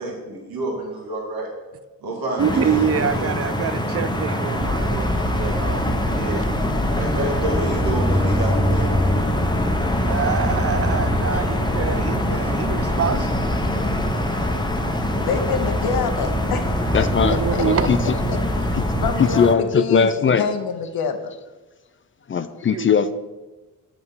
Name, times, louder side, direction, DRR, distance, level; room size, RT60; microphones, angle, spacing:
voice 1, 0.0-1.5 2.0-3.4 6.9-9.0, right 1 dB, 75° right, 1.5 m, -29 dB
sound 1, 2.4-19.5, equal, 10° left, 0.8 m, -24 dB
voice 2, 2.4-6.5 10.0-13.6 17.2-18.0 22.7-22.9, right 7 dB, 40° right, 0.5 m, -26 dB
sound 2, 4.6-19.1, left 1 dB, 10° right, 1.5 m, -27 dB
voice 3, 15.2-17.9 18.3-18.4 18.9-21.3, left 6 dB, 75° left, 0.8 m, -27 dB
voice 4, 16.9-17.4 17.6-18.0 19.2-20.4 22.3-23.1, left 6 dB, 35° left, 0.4 m, -19 dB
8.0 x 2.9 x 5.4 m
supercardioid pair, 45°, 37 cm